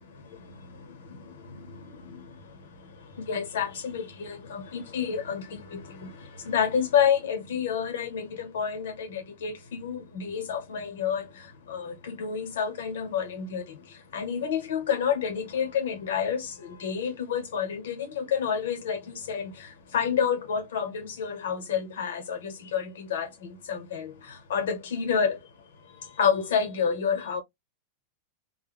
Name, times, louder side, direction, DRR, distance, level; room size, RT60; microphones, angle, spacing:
voice 1, 3.3-6.1 6.4-11.3 11.7-13.6 14.1-16.5 16.8-19.5 19.9-23.3 23.7-24.1 24.5-25.4 26.2-27.4, left 7 dB, 90° left, 0.9 m, -28 dB
2.2 x 2.1 x 3.4 m
supercardioid pair, 165°, 0 cm